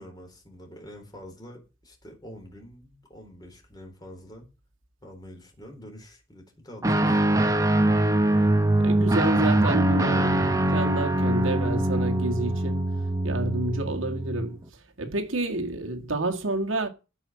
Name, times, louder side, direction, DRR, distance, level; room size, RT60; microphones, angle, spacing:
voice 1, 0.0-4.5 5.0-7.1, equal, 20° left, 3.8 m, -46 dB
Guitar, 6.8-14.5, right 1 dB, 15° right, 1.0 m, -23 dB
voice 2, 8.8-12.8 13.2-14.6 15.0-16.9, right 2 dB, 85° right, 2.0 m, -29 dB
14.5 x 5.6 x 7.4 m
head